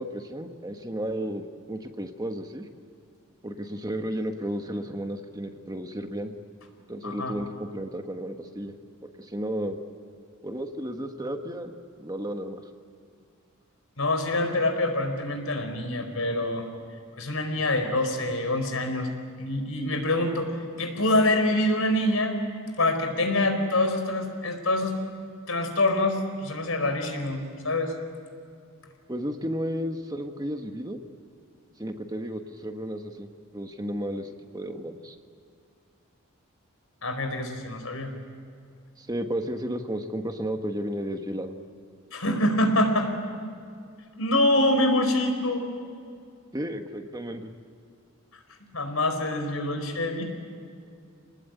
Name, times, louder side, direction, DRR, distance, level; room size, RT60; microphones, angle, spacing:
voice 1, 0.0-2.6 3.4-6.3 6.9-8.7 9.0-9.8 10.4-12.6 29.1-31.0 31.8-35.2 39.0-41.5 46.5-47.5, equal, 20° right, 5 dB, 1.4 m, -33 dB
voice 2, 7.0-7.3 14.0-16.6 17.2-19.1 19.4-20.5 20.8-22.4 22.8-25.0 25.5-27.9 37.0-38.1 42.1-43.1 44.2-45.7 48.7-50.2, left 1 dB, 80° left, 6 dB, 4.6 m, -25 dB
27.5 x 20.0 x 9.3 m, 2.4 s
head